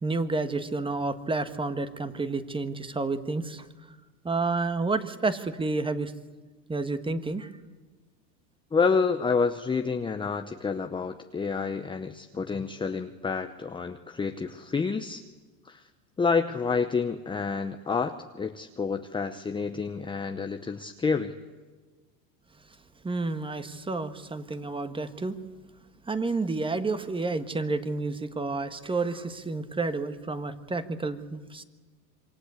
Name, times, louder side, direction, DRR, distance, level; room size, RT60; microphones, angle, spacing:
voice 1, 0.0-3.7 4.2-6.1 6.7-7.5 23.0-25.4 26.1-31.6, right 3 dB, 10° right, 10 dB, 1.5 m, -30 dB
voice 2, 8.7-15.2 15.6-15.8 16.2-21.3, left 5 dB, 10° left, 6 dB, 0.8 m, -28 dB
27.0 x 23.5 x 8.3 m, 1.3 s
hypercardioid pair, 115°, 49 cm